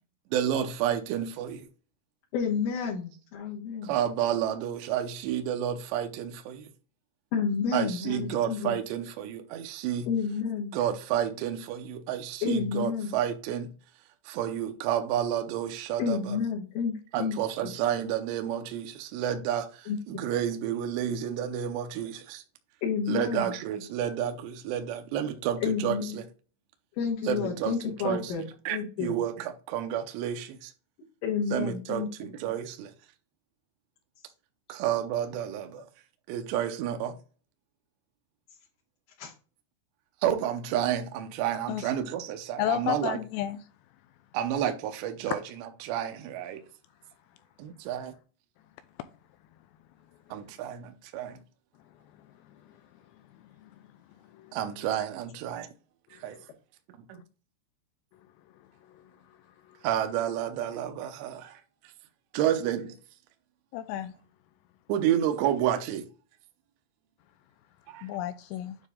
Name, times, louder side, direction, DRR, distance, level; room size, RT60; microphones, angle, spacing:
voice 1, 0.3-1.7 3.8-6.7 7.7-10.1 10.7-13.7 14.3-16.4 17.1-22.4 23.1-26.2 27.3-27.8 28.0-28.3 28.7-30.7 31.5-32.9 34.7-35.8 36.3-37.2 40.2-43.2 44.3-46.6 47.9-48.1 50.3-51.4 54.5-55.7 56.1-56.4 59.8-61.6 62.3-62.9 64.9-66.1 67.9-68.1, right 10 dB, 80° right, 2.8 m, -30 dB
voice 2, 2.3-3.9 7.3-8.8 10.1-10.7 12.4-13.2 16.0-16.9 17.2-17.4 19.9-20.2 22.8-23.5 25.6-26.1 27.0-29.2 31.2-32.3 39.2-39.3, left 6 dB, 65° left, 2.4 m, -30 dB
voice 3, 42.6-43.6 53.6-53.7 54.3-54.6 56.3-56.4 58.9-59.0 63.7-64.1 68.0-68.8, left 12 dB, 85° left, 2.5 m, -32 dB
9.4 x 3.3 x 3.7 m
omnidirectional pair, 5.5 m